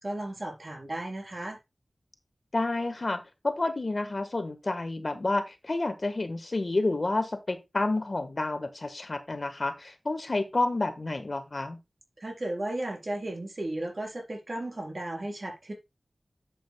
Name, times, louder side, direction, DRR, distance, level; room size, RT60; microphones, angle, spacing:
voice 1, 0.0-1.6 12.2-15.7, right 1 dB, 50° right, 3.9 m, -35 dB
voice 2, 2.5-11.8, left 2 dB, 50° left, 1.3 m, -30 dB
10.5 x 7.5 x 2.2 m
wide cardioid pair, 70°, 0 cm